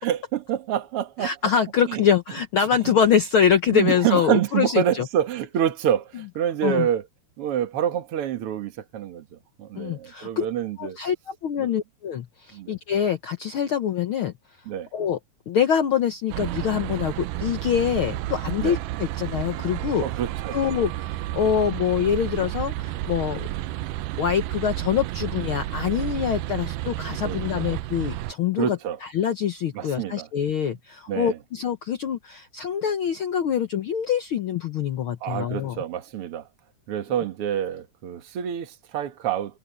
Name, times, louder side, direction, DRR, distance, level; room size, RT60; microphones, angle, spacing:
voice 1, 0.0-1.3 1.8-2.0 2.8-2.9 3.7-7.1 7.4-11.0 11.6-11.7 12.5-12.7 14.7-14.9 18.6-18.8 20.0-20.6 23.5-23.7 27.2-27.7 28.6-29.0 29.7-30.3 31.1-31.4 35.2-36.5 36.9-39.6, right 10 dB, 50° right, 2.1 m, -27 dB
voice 2, 1.2-5.0 6.6-6.9 9.8-10.5 10.8-14.3 14.9-15.2 15.5-20.0 20.5-23.5 24.2-28.8 29.1-35.8, left 8 dB, 80° left, 1.2 m, -24 dB
sound 1, 16.3-28.3, right 15 dB, 80° right, 2.2 m, -31 dB
omnidirectional pair, 3.7 m